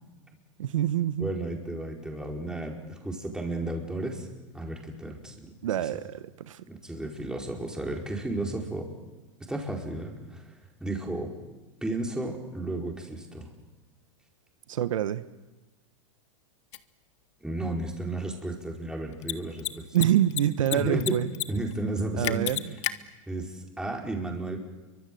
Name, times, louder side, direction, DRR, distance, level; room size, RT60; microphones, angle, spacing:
voice 1, 0.6-1.3 5.6-6.6 14.7-15.2 19.9-21.3 22.2-22.6, right 11 dB, 85° right, 1.1 m, -26 dB
voice 2, 1.2-4.3 4.5-5.5 5.9-6.0 6.6-8.9 9.5-11.3 11.8-13.5 17.4-19.8 20.7-21.1 21.5-22.7 23.3-24.6, right 2 dB, 5° right, 4.8 m, -33 dB
Mechanisms, 16.7-16.8 19.1-19.3 19.6-19.7 19.9-20.7 21.0-21.4 21.7-21.8 22.2-22.9, left 17 dB, 65° left, 1.4 m, -29 dB
29.0 x 24.5 x 7.8 m
hypercardioid pair, 130°, 16 cm